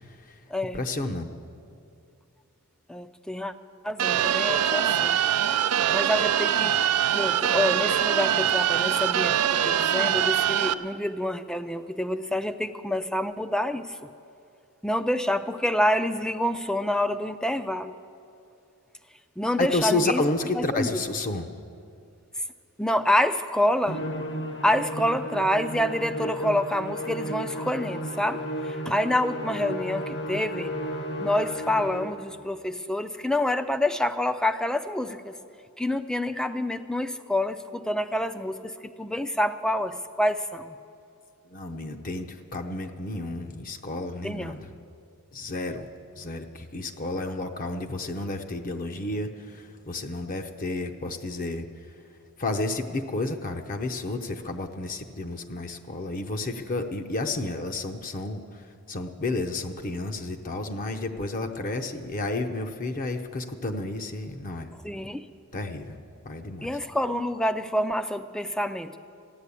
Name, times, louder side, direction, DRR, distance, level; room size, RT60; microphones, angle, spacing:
voice 1, 0.7-1.3 19.6-21.5 41.5-44.6 45.3-45.9 46.2-51.6 52.4-58.6 58.9-64.7 65.5-66.0 66.2-66.7, left 2 dB, 40° left, 6 dB, 0.7 m, -31 dB
voice 2, 2.9-3.5 3.8-5.2 5.9-6.8 7.1-14.1 14.8-18.0 19.4-20.2 20.5-21.0 22.8-24.0 24.6-30.7 31.2-35.4 35.8-40.8 44.2-44.6 64.8-65.3 66.6-69.0, left 1 dB, 5° left, 9 dB, 0.4 m, -27 dB
sound 1, 4.0-10.7, right 10 dB, 85° right, 0.5 m, -23 dB
Musical instrument, 23.9-32.3, equal, 55° left, 1.0 m, -34 dB
14.5 x 10.5 x 8.3 m, 2.6 s
head